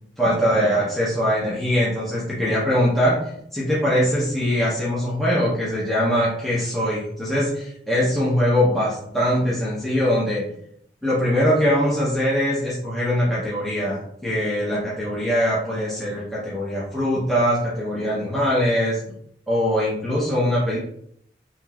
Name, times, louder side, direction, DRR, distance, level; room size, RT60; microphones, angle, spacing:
voice 1, 0.2-3.2 3.5-10.4 11.0-19.0 19.5-20.8, equal, ahead, -9 dB, 0.7 m, -22 dB
3.6 x 2.8 x 2.4 m, 0.70 s
head